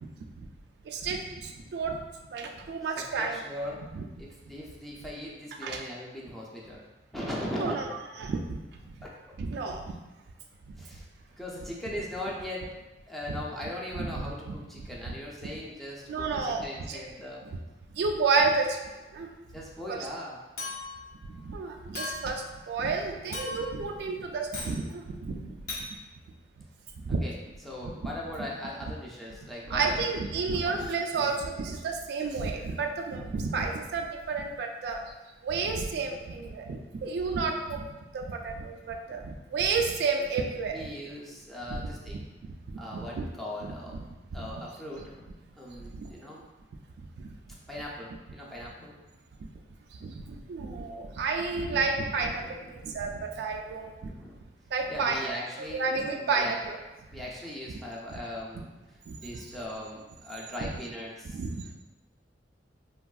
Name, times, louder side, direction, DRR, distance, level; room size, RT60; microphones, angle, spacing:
voice 1, 0.9-2.0 2.3-3.4 3.9-4.0 5.6-5.8 7.5-7.9 8.2-8.6 8.9-9.0 9.4-9.8 13.3-13.4 14.0-14.3 15.1-15.2 16.1-17.0 17.5-17.6 17.9-18.8 19.1-19.3 19.9-20.0 21.3-25.5 27.0-27.2 28.4-28.5 29.7-35.0 35.4-37.9 38.1-40.9 41.7-41.8 42.7-42.8 43.1-43.3 43.6-44.0 47.2-47.3 50.0-52.4 52.7-53.9 54.7-56.8 59.1-59.4 61.3-61.7, right 4 dB, 65° right, 3 dB, 0.3 m, -31 dB
voice 2, 3.0-3.8 4.2-6.9 7.1-7.9 9.0-9.1 10.8-11.0 11.4-12.7 13.1-17.4 19.5-20.4 27.2-27.3 27.6-30.0 30.5-30.8 31.1-31.3 33.6-33.7 39.1-39.3 40.7-42.3 42.8-44.0 44.3-45.3 45.6-46.4 47.7-48.9 52.2-52.8 54.0-54.4 54.9-56.6 57.1-61.4, left 1 dB, ahead, -5 dB, 0.4 m, -39 dB
Chink clink, 20.6-21.1 21.9-22.4 23.3-23.8 24.5-24.8 25.7-25.9, left 3 dB, 55° left, 0.6 m, -37 dB
3.4 x 2.3 x 2.3 m, 1.1 s
head